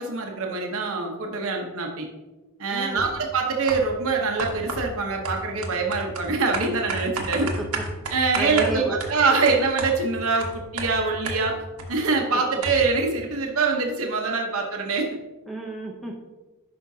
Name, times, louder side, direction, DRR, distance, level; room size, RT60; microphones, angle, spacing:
voice 1, 0.0-2.1 2.6-7.5 8.1-11.6 11.9-15.1, right 4 dB, 70° right, 2 dB, 0.9 m, -24 dB
voice 2, 2.7-3.1 7.4-7.8 8.4-9.0 15.5-16.2, right 1 dB, ahead, -1 dB, 0.6 m, -32 dB
sound 1, 3.0-3.2 3.7-4.0 4.4-12.0 12.3-12.4 12.6-13.0, right 2 dB, 85° right, 1.2 m, -32 dB
11.0 x 5.1 x 2.7 m, 1.1 s
head